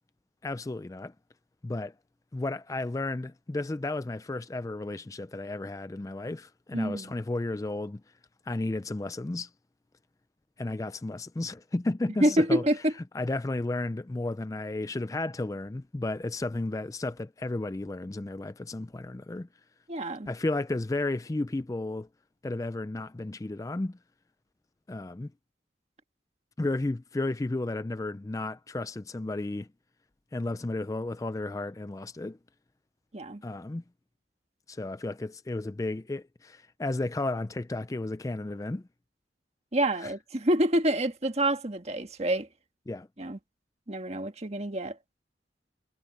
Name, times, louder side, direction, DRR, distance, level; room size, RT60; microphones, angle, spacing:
voice 1, 0.4-1.1 1.6-1.9 2.3-8.0 8.5-9.5 10.6-12.6 13.1-19.5 20.3-22.1 22.4-24.0 24.9-25.3 26.6-29.7 30.3-32.4 33.4-33.8 34.7-38.8 40.0-40.1 42.9-43.1, left 2 dB, 20° left, 0.4 m, -33 dB
voice 2, 6.7-7.1 12.2-12.9 19.9-20.3 33.1-33.4 39.7-42.5 43.2-43.4 43.9-45.0, right 1 dB, 35° right, 1.5 m, -27 dB
head